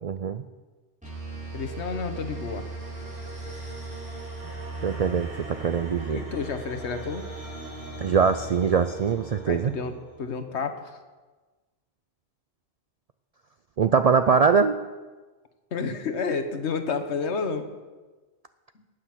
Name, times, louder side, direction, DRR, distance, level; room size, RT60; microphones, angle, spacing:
voice 1, 0.0-0.4 4.8-6.2 8.0-9.7 13.8-14.8, right 6 dB, 60° right, 10 dB, 0.4 m, -22 dB
sound 1, 1.0-10.4, right 2 dB, 5° right, 4.8 m, -38 dB
voice 2, 1.5-2.6 6.1-7.3 9.5-9.9 10.2-11.0 15.7-17.7 18.7-18.8, left 5 dB, 75° left, 8 dB, 1.3 m, -30 dB
9.8 x 9.2 x 7.5 m, 1.3 s
omnidirectional pair, 1.1 m